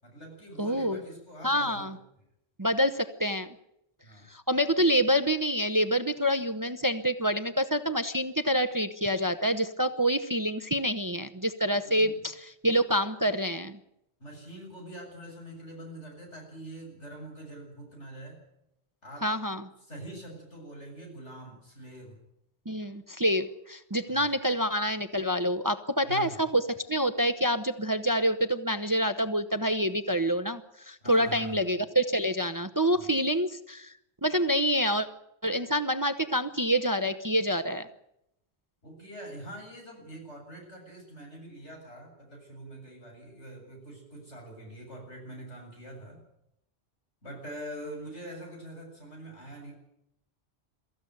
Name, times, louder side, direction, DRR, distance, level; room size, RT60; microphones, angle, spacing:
voice 1, 0.0-1.9 4.0-4.3 11.8-12.2 14.2-18.5 19.0-19.3 19.9-22.2 24.1-24.3 26.0-26.4 31.0-31.6 32.9-33.1 38.8-46.2 47.2-49.7, right 1 dB, 85° left, 0 dB, 8.1 m, -44 dB
voice 2, 0.6-1.0 1.4-1.9 2.6-3.5 4.3-13.8 19.2-19.6 22.7-26.6 26.9-33.9 34.2-35.1 35.4-37.9, equal, 20° right, 11 dB, 0.9 m, -27 dB
23.0 x 14.5 x 9.3 m, 0.81 s
omnidirectional pair, 1.2 m